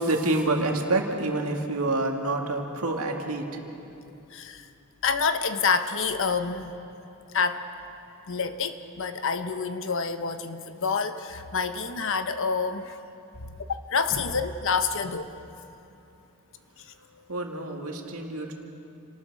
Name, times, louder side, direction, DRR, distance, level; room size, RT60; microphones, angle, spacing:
voice 1, 0.0-3.6 17.3-18.5, right 2 dB, 75° right, 2 dB, 2.2 m, -27 dB
voice 2, 4.3-4.6 5.0-6.7 7.3-7.6 8.3-13.0 13.9-15.3, left 5 dB, 60° left, 9 dB, 1.0 m, -27 dB
29.0 x 19.0 x 4.9 m, 2.8 s
head